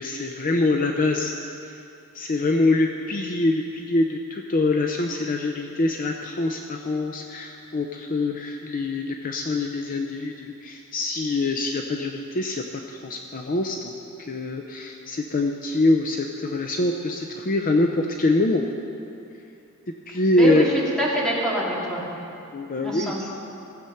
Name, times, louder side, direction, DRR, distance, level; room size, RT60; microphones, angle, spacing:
voice 1, 0.0-1.3 2.1-13.9 14.2-18.6 20.1-20.6 22.5-23.1, left 2 dB, 40° left, 3 dB, 0.6 m, -24 dB
voice 2, 20.4-22.1 22.8-23.2, right 1 dB, 5° left, -6 dB, 2.3 m, -25 dB
16.5 x 7.8 x 5.7 m, 2.7 s
head